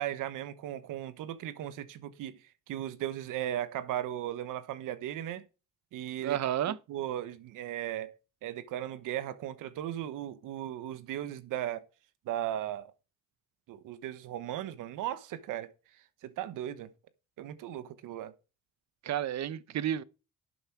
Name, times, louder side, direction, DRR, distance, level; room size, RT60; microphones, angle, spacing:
voice 1, 0.0-2.4 2.7-5.4 5.9-6.4 6.9-11.9 12.2-12.9 13.7-15.7 16.2-16.9 17.4-18.3, right 12 dB, 75° right, 1.2 m, -37 dB
voice 2, 6.2-6.8 19.0-20.0, right 11 dB, 55° right, 0.8 m, -31 dB
11.5 x 7.1 x 4.7 m
supercardioid pair, 70°, 32 cm